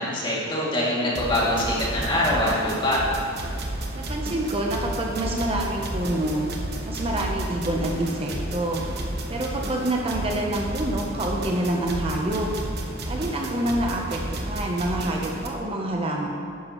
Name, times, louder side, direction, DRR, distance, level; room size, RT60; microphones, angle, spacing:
voice 1, 0.0-3.0, left 1 dB, 25° left, -7 dB, 2.5 m, -24 dB
sound 1, 1.1-15.5, right 1 dB, 55° right, 1.1 m, -32 dB
voice 2, 3.9-6.5 6.8-8.8 9.3-12.5 13.1-16.3, right 1 dB, 30° right, 0 dB, 0.7 m, -27 dB
11.0 x 10.5 x 3.1 m, 2.5 s
head